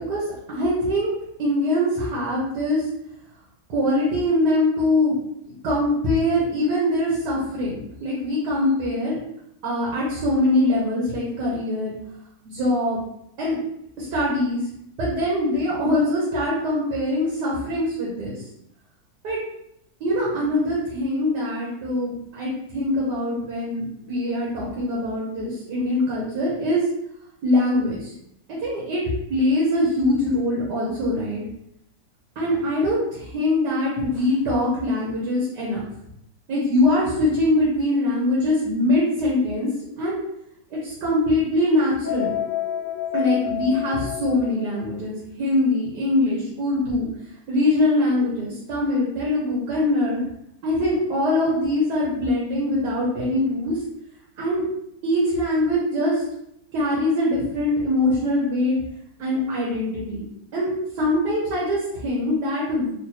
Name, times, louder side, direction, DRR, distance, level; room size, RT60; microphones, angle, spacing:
voice 1, 0.5-1.1 1.4-2.9 3.7-5.2 5.4-9.2 9.6-12.0 12.4-13.0 13.4-13.6 14.0-14.6 15.0-18.4 19.2-19.4 20.0-26.8 27.4-28.1 28.6-29.0 29.3-31.4 32.4-35.8 36.5-39.7 40.0-40.2 40.7-42.3 43.1-47.1 47.5-50.2 50.6-53.8 54.4-54.6 55.0-56.2 56.7-58.7 59.2-60.2 60.5-60.7 61.0-62.9, left 1 dB, 80° right, -5 dB, 1.6 m, -23 dB
sound 1, 42.0-44.8, left 11 dB, 80° left, 1.2 m, -29 dB
3.8 x 2.4 x 2.8 m, 0.75 s
omnidirectional pair, 1.8 m